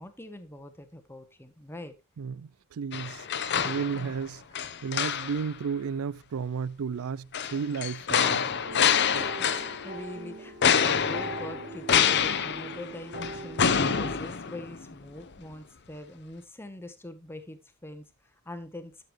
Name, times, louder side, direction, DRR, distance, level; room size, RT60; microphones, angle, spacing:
voice 1, 0.0-2.0 3.9-4.1 8.8-13.7 14.0-19.0, left 1 dB, 10° left, 1.1 m, -43 dB
voice 2, 2.2-3.3 3.6-4.4 4.8-8.5, right 6 dB, 80° right, 0.4 m, -33 dB
sound 1, 2.9-4.2 4.6-5.5 7.3-10.0 10.6-14.9 15.3-15.4, left 7 dB, 50° left, 0.8 m, -27 dB
sound 2, 8.6-14.2, right 2 dB, 50° right, 3.3 m, -41 dB
11.5 x 6.9 x 3.1 m
head